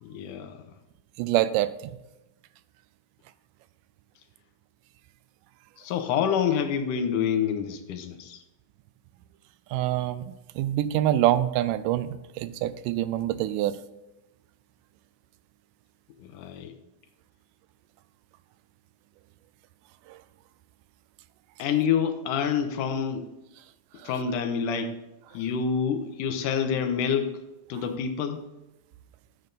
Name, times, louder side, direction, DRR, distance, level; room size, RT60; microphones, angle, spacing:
voice 1, 0.0-0.6 5.8-8.4 16.2-16.7 21.6-23.3 24.0-25.0 25.3-27.4 27.7-28.4, left 7 dB, 80° left, 8 dB, 2.4 m, -27 dB
voice 2, 1.2-1.7 9.7-10.3 10.6-13.8, right 13 dB, 85° right, 14 dB, 2.1 m, -25 dB
10.5 x 7.8 x 4.0 m, 0.96 s
omnidirectional pair, 3.7 m